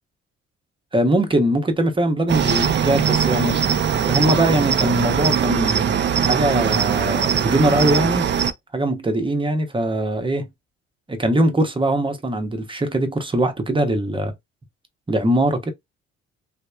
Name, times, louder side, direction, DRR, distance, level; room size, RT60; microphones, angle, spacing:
voice 1, 0.9-3.7 4.0-8.2 8.7-10.5 11.1-14.3 15.1-15.7, right 1 dB, 15° right, 0.8 m, -21 dB
Cricket, 2.3-8.5, right 8 dB, 35° right, 0.4 m, -20 dB
2.9 x 2.0 x 2.2 m
supercardioid pair, 60°, 31 cm